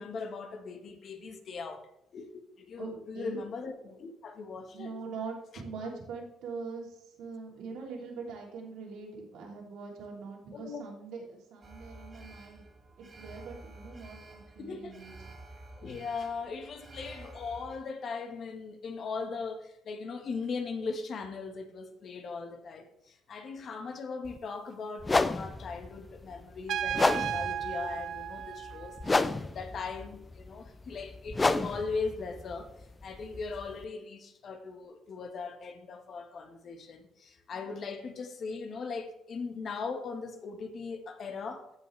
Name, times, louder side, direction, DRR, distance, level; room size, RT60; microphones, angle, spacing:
voice 1, 0.0-4.9 10.5-10.8 14.6-15.0 15.7-41.7, left 4 dB, 50° left, 6 dB, 1.4 m, -39 dB
voice 2, 2.8-3.4 4.7-12.6 13.0-15.1 29.4-29.6 37.5-37.8, right 4 dB, 85° right, -1 dB, 3.1 m, -43 dB
Alarm, 11.6-17.8, right 2 dB, 30° right, 2.0 m, -50 dB
sound 1, 24.2-24.4 25.0-33.8, left 3 dB, 20° left, 0.4 m, -31 dB
Trumpet, 26.7-29.3, right 10 dB, 60° right, 0.4 m, -35 dB
15.0 x 5.7 x 3.3 m, 0.83 s
cardioid pair, 125°, 0 cm